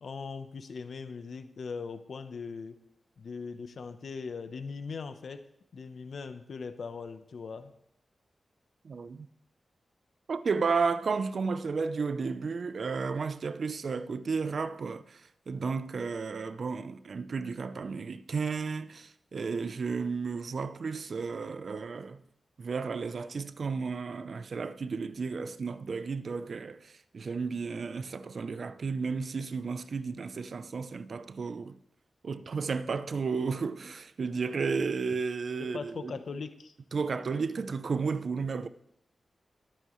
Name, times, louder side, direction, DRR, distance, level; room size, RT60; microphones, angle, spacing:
voice 1, 0.0-2.8 3.2-5.4 5.7-7.7 35.6-36.8, left 5 dB, 75° left, 0.9 m, -40 dB
voice 2, 8.8-9.3 10.3-22.2 22.6-31.8 32.2-36.1 36.9-38.7, right 5 dB, 65° right, 0.6 m, -33 dB
21.0 x 9.0 x 3.2 m
wide cardioid pair, 80°, 0 cm